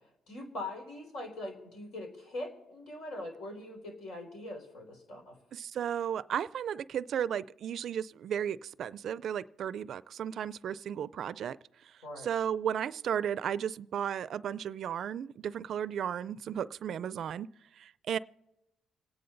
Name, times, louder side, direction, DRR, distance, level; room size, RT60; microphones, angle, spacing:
voice 1, 0.3-5.4 12.0-12.3, left 1 dB, 80° left, 2 dB, 4.1 m, -42 dB
voice 2, 5.5-11.6 11.8-17.5 17.8-18.2, right 9 dB, 65° right, 18 dB, 0.4 m, -34 dB
27.5 x 9.7 x 3.9 m, 0.92 s
cardioid pair, 90°, 0 cm